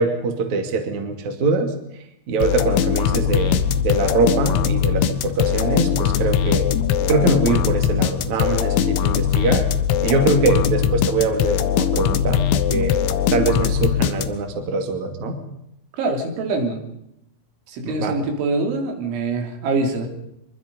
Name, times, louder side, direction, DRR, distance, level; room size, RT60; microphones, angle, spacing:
voice 1, 0.0-1.7 2.3-6.7 7.1-9.7 10.0-12.4 12.7-13.0 13.3-15.4 17.8-18.2, right 3 dB, 45° right, 5 dB, 3.6 m, -23 dB
sound 1, 2.4-14.6, left 9 dB, 85° left, 3.7 m, -21 dB
voice 2, 10.4-10.7 16.0-16.8 17.7-20.1, right 3 dB, 85° right, 4 dB, 5.7 m, -24 dB
25.0 x 23.5 x 5.6 m, 0.81 s
omnidirectional pair, 5.3 m